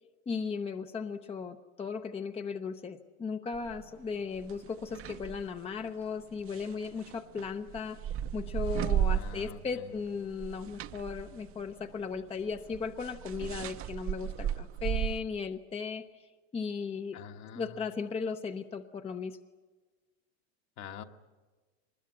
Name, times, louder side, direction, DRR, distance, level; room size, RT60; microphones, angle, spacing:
voice 1, 0.3-8.0 8.3-17.2 17.5-19.4, left 5 dB, 15° left, 7 dB, 0.8 m, -36 dB
sound 1, 3.5-3.9 4.3-5.5 6.4-9.7 10.1-15.2, right 10 dB, 35° right, 0.8 m, -34 dB
voice 2, 9.1-10.0 17.1-17.8 20.8-21.0, left 7 dB, 45° left, 6 dB, 1.5 m, -46 dB
23.0 x 21.0 x 8.5 m, 1.3 s
supercardioid pair, 125°, 39 cm